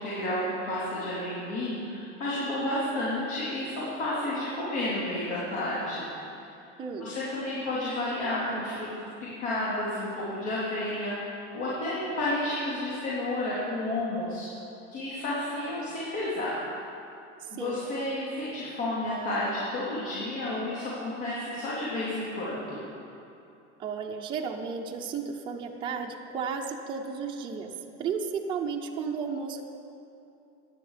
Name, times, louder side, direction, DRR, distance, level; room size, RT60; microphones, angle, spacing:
voice 1, 0.0-6.0 7.0-8.9 9.2-14.5 14.9-16.6 17.5-22.8, left 1 dB, 75° left, -8 dB, 3.7 m, -31 dB
voice 2, 6.8-7.1 17.4-17.8 23.8-27.7 28.0-29.6, right 6 dB, 15° right, 0 dB, 0.6 m, -33 dB
16.0 x 10.5 x 5.0 m, 2.8 s
cardioid pair, 175°, 35 cm